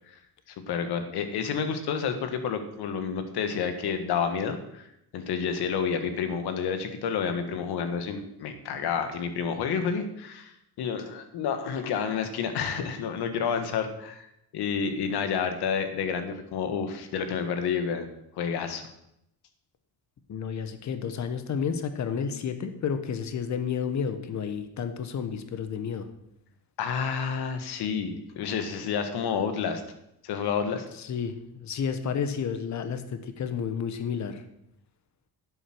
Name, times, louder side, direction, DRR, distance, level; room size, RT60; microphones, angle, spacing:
voice 1, 0.5-14.3 14.5-18.1 18.4-18.8 26.8-29.8 30.2-30.9, left 6 dB, 80° left, 8 dB, 1.7 m, -30 dB
voice 2, 20.3-26.1 31.0-34.4, left 6 dB, 45° left, 9 dB, 1.2 m, -31 dB
11.0 x 8.2 x 6.0 m, 0.79 s
cardioid pair, 125°, 39 cm